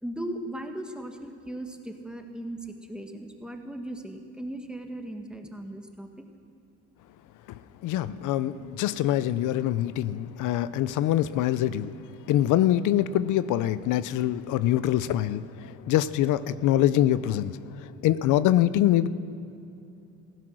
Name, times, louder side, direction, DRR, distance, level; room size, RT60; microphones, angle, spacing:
voice 1, 0.0-6.1, right 1 dB, 5° right, 4 dB, 1.7 m, -37 dB
voice 2, 7.8-11.9 12.3-17.6 18.0-19.1, left 12 dB, 85° left, 15 dB, 0.5 m, -24 dB
16.0 x 12.5 x 6.3 m, 2.8 s
cardioid pair, 90°, 30 cm